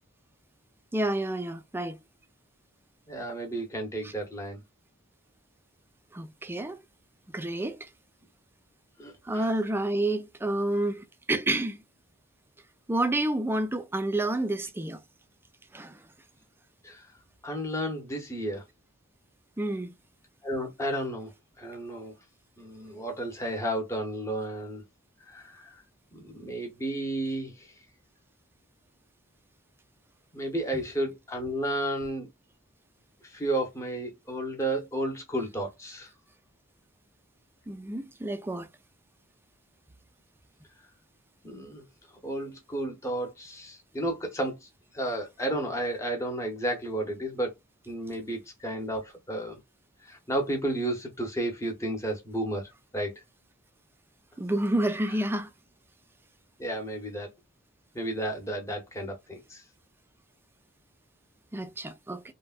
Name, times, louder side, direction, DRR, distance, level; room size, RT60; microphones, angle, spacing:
voice 1, 0.9-2.0 4.0-4.1 6.1-6.8 7.3-7.9 9.3-11.8 12.9-15.0 15.7-16.0 19.6-19.9 37.7-38.7 54.4-55.5 61.5-62.2, right 1 dB, 10° right, 0.4 m, -29 dB
voice 2, 3.1-4.6 9.0-9.5 16.8-17.1 17.4-18.6 20.4-21.3 21.6-22.1 22.6-24.8 25.3-25.8 26.1-27.7 30.3-32.3 33.2-36.1 41.4-41.8 42.2-44.7 44.9-47.5 47.9-49.6 50.0-53.1 55.1-55.2 56.6-57.3 57.9-59.6, right 1 dB, 15° left, 0.9 m, -32 dB
3.2 x 2.2 x 2.4 m
head